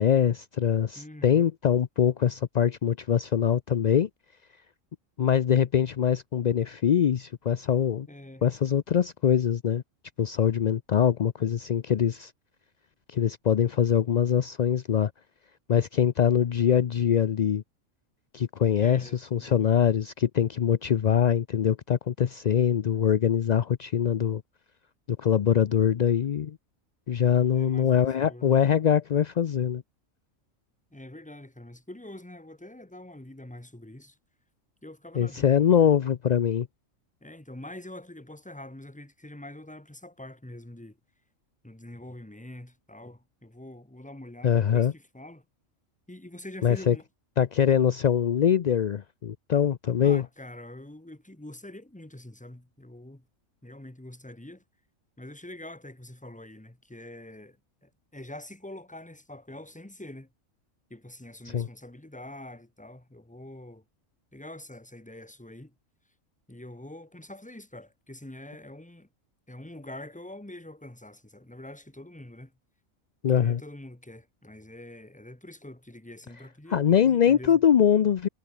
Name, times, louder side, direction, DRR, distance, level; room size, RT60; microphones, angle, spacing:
voice 1, 0.0-4.1 5.2-8.1 8.4-9.8 10.2-12.3 13.1-15.1 15.7-17.6 18.3-24.4 25.1-26.6 27.1-29.8 35.2-36.7 44.4-44.9 46.6-47.0 47.4-50.2 61.5-61.7 73.2-73.6 76.7-78.3, left 8 dB, 55° left, 0.4 m, -23 dB
voice 2, 0.9-1.5 8.1-8.4 18.8-19.9 27.5-28.7 30.9-34.2 34.8-35.7 37.2-41.0 41.6-45.4 46.1-47.1 50.0-53.2 53.6-54.6 55.2-57.6 57.8-60.3 60.9-63.8 64.3-65.7 66.5-69.1 69.5-72.5 73.3-77.6, left 1 dB, 5° left, 1.3 m, -45 dB
omnidirectional pair, 1.4 m